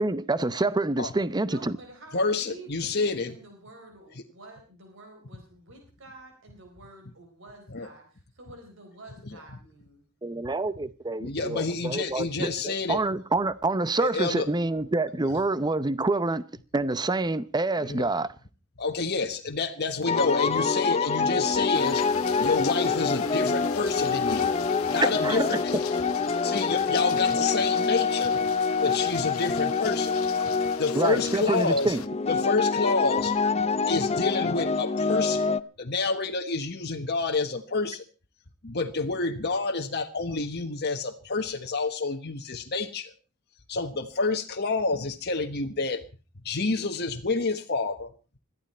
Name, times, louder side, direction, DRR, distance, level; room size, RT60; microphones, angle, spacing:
voice 1, 0.0-1.7 10.2-16.4 16.7-18.3 25.2-25.6 30.9-32.0, right 2 dB, 20° right, 0.7 m, -27 dB
voice 2, 1.4-10.0, right 2 dB, 65° right, 4.0 m, -49 dB
voice 3, 2.1-3.3 7.7-7.9 11.2-13.0 14.0-14.5 17.8-18.0 18.8-22.0 22.4-24.5 24.9-25.8 26.3-28.4 28.8-30.2 30.8-32.0 32.3-33.6 33.9-35.4 35.8-38.0 38.6-43.1 43.7-46.0 46.4-48.1, left 3 dB, 50° left, 1.3 m, -28 dB
sound 1, 20.1-35.6, left 4 dB, 30° left, 0.7 m, -26 dB
sound 2, 21.7-32.1, left 8 dB, 75° left, 0.8 m, -40 dB
21.0 x 14.0 x 4.4 m
head